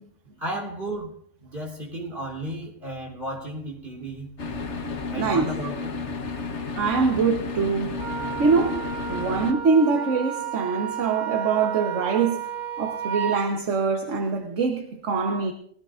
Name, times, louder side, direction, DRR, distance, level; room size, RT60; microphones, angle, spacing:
voice 1, 0.4-4.3 5.1-6.0, right 1 dB, 35° right, 3.8 m, -34 dB
sound 1, 4.4-9.5, left 4 dB, 55° left, 1.4 m, -32 dB
voice 2, 5.1-5.5 6.8-8.0 8.4-12.5 12.8-15.5, right 5 dB, 60° right, 1.4 m, -24 dB
Wind instrument woodwind instrument, 8.0-13.5, right 8 dB, 80° right, 1.5 m, -32 dB
21.0 x 17.0 x 2.5 m
omnidirectional pair, 1.5 m